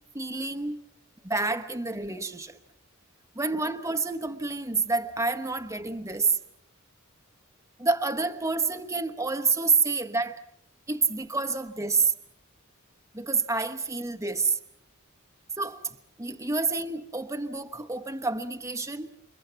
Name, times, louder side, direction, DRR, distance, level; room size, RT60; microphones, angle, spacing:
voice 1, 0.1-0.8 1.2-2.6 3.3-6.4 7.8-10.4 10.9-12.1 13.1-14.6 15.6-19.1, right 4 dB, 15° right, 1.1 m, -28 dB
29.0 x 25.5 x 5.8 m
head